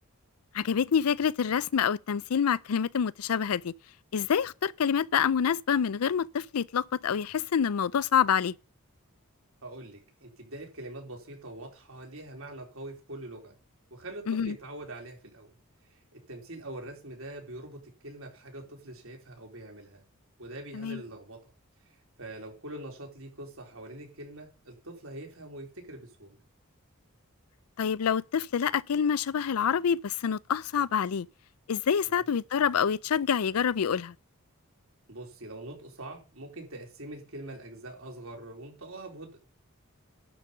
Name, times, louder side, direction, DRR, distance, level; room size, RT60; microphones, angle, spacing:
voice 1, 0.5-3.7 4.1-8.5 14.3-14.6 20.7-21.0 27.8-31.3 31.7-34.1, left 7 dB, 80° left, 0.5 m, -27 dB
voice 2, 9.6-13.5 13.9-15.5 15.9-20.0 20.4-21.4 22.2-26.4 32.1-32.2 35.1-39.4, right 1 dB, 65° right, 4.0 m, -44 dB
11.5 x 5.3 x 8.4 m
head